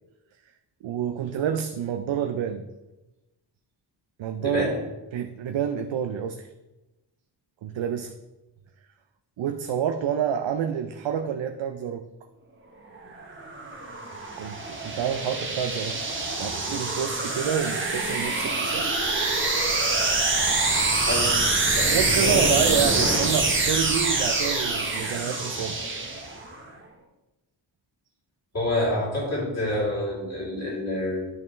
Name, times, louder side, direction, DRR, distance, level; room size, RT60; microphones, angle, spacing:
voice 1, 0.8-2.7 4.2-4.7 5.1-6.5 7.6-8.1 9.4-12.1 14.4-16.0 16.4-18.9 20.8-20.9 21.9-25.8, right 8 dB, 85° right, 6 dB, 0.6 m, -28 dB
voice 2, 4.4-4.7 21.0-21.3 21.8-22.6 28.5-31.3, left 1 dB, 35° left, -5 dB, 2.9 m, -27 dB
sound 1, 13.1-26.6, right 3 dB, 25° right, 1.1 m, -25 dB
11.0 x 5.4 x 3.2 m, 1.0 s
wide cardioid pair, 150°, 45 cm